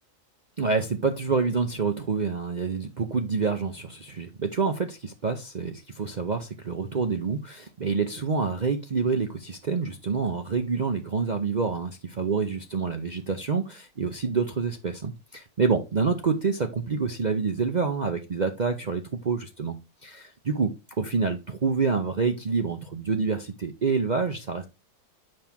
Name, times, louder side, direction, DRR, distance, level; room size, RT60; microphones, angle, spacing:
voice 1, 0.6-19.8 20.0-24.7, right 5 dB, 50° right, 0.5 m, -27 dB
7.8 x 5.8 x 3.5 m
omnidirectional pair, 1.6 m